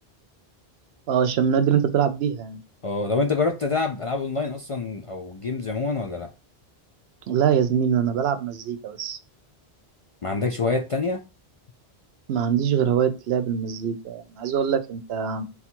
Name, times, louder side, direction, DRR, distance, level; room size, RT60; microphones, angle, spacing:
voice 1, 1.1-2.6 7.3-9.2 12.3-15.4, right 8 dB, 80° right, 0.8 m, -23 dB
voice 2, 2.8-6.3 10.2-11.2, left 3 dB, 50° left, 0.4 m, -26 dB
4.1 x 2.4 x 4.4 m
omnidirectional pair, 1.0 m